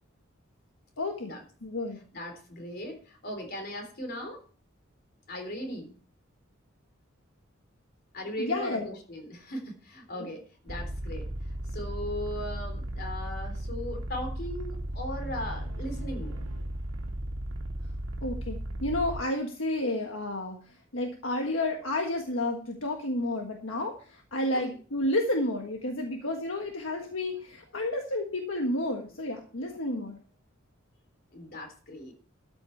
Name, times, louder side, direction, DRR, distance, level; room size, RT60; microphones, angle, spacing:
voice 1, 1.0-1.3 1.6-2.0 8.4-8.9 10.2-10.3 18.2-20.6 20.9-30.2, left 1 dB, 75° left, 2 dB, 1.6 m, -31 dB
voice 2, 2.1-4.4 5.3-5.9 8.1-16.4 24.5-24.6 31.3-32.1, left 1 dB, 50° left, 5 dB, 3.6 m, -38 dB
sound 1, 10.7-19.2, right 1 dB, 85° right, 1.7 m, -35 dB
13.5 x 7.9 x 4.6 m, 0.42 s
head